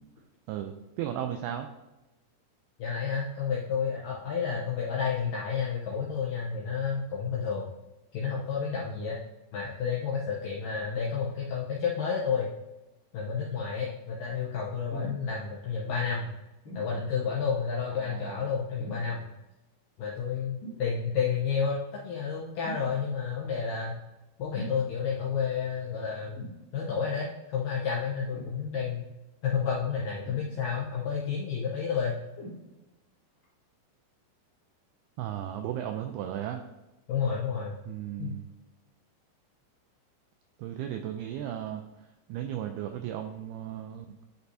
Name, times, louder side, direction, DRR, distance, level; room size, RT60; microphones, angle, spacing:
voice 1, 0.5-1.7 17.9-18.5 35.2-36.6 37.9-38.5 40.6-41.8 42.3-44.2, right 10 dB, 90° right, 6 dB, 2.2 m, -35 dB
voice 2, 2.8-7.7 8.1-9.2 9.5-12.5 13.1-16.3 16.7-19.3 20.0-24.0 24.4-26.5 26.7-29.1 29.4-32.2 37.1-37.8 38.2-38.4, left 6 dB, 80° left, -5 dB, 1.9 m, -30 dB
sound 1, 14.9-15.2 16.6-16.9 18.8-19.2 20.6-20.9 22.6-22.9 24.5-24.8 26.4-26.6 28.3-28.6 30.2-30.8 32.4-32.6 33.4-33.5, right 1 dB, 25° left, 2.1 m, -41 dB
10.0 x 5.3 x 2.7 m, 1.0 s
omnidirectional pair, 5.0 m